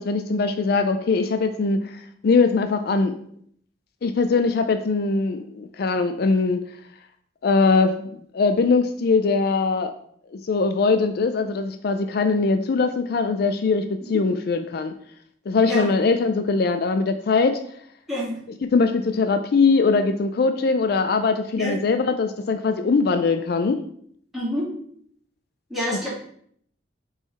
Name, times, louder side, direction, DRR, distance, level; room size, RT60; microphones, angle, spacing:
voice 1, 0.0-3.1 4.0-6.6 7.4-9.9 10.3-14.9 15.5-17.6 18.7-23.8, left 4 dB, 60° left, 8 dB, 0.4 m, -21 dB
voice 2, 18.1-18.4 21.6-21.8 24.3-24.6 25.7-26.1, equal, ahead, -8 dB, 2.6 m, -27 dB
6.0 x 3.9 x 4.1 m, 0.65 s
head